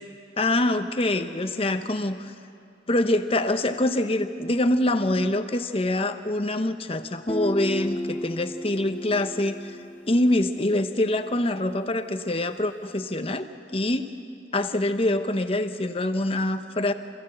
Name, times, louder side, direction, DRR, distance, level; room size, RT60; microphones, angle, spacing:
voice 1, 0.4-2.3 2.9-9.7 10.1-14.1 14.5-16.9, left 1 dB, 30° left, 9 dB, 0.9 m, -25 dB
Guitar, 7.3-10.9, equal, 10° left, 0.5 m, -34 dB
27.0 x 15.5 x 7.8 m, 2.4 s
head